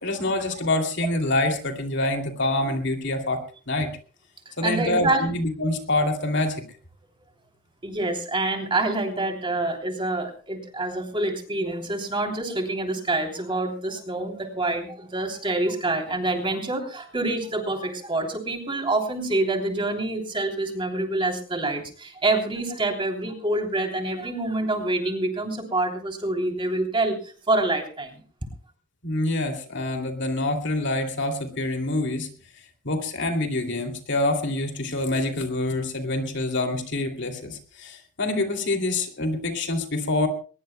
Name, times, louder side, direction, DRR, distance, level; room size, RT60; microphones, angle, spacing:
voice 1, 0.0-3.4 3.7-3.9 4.6-6.6 29.0-32.3 32.8-40.3, left 2 dB, 55° left, 4 dB, 2.7 m, -26 dB
voice 2, 4.6-5.3 7.8-28.2, right 2 dB, 25° right, 3 dB, 3.1 m, -26 dB
22.5 x 20.5 x 2.2 m, 0.39 s
head